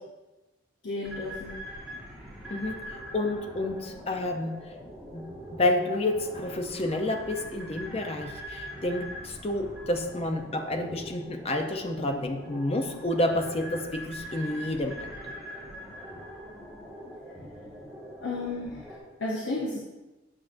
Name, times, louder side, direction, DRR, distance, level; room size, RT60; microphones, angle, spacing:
voice 1, 0.8-1.6 18.2-19.8, left 2 dB, 65° left, -4 dB, 0.8 m, -33 dB
sound 1, 1.0-19.0, equal, ahead, 1.6 m, -42 dB
voice 2, 2.5-4.6 5.1-5.3 5.5-15.3, left 1 dB, 30° left, 4 dB, 0.6 m, -29 dB
8.7 x 5.9 x 2.6 m, 1.1 s
head